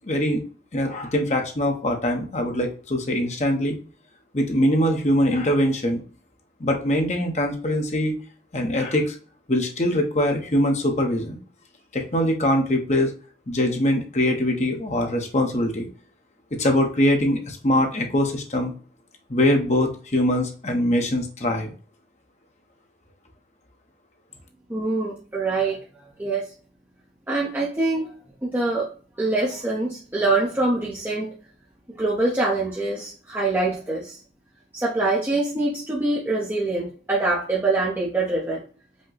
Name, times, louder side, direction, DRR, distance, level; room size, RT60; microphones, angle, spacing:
voice 1, 0.1-0.4 0.7-3.8 4.3-6.0 6.6-8.1 8.5-9.1 9.5-11.4 11.9-13.1 13.5-15.9 16.6-18.7 19.3-21.7, left 1 dB, 40° left, 3 dB, 0.8 m, -22 dB
voice 2, 24.7-25.8 26.2-26.5 27.3-28.1 28.4-28.9 29.2-31.3 31.9-34.2 34.7-38.6, right 2 dB, 10° right, -5 dB, 0.8 m, -24 dB
5.2 x 2.2 x 3.9 m, 0.40 s
head